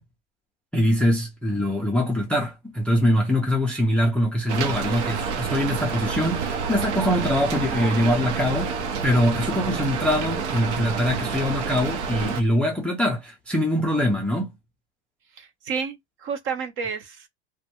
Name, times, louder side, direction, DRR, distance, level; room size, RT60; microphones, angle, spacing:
voice 1, 0.7-14.5, equal, 5° left, 0.4 m, -23 dB
Rain, 4.5-12.4, right 5 dB, 70° right, 0.8 m, -28 dB
voice 2, 15.4-17.3, right 6 dB, 35° right, 0.6 m, -31 dB
2.2 x 2.2 x 2.8 m
hypercardioid pair, 115°, 35 cm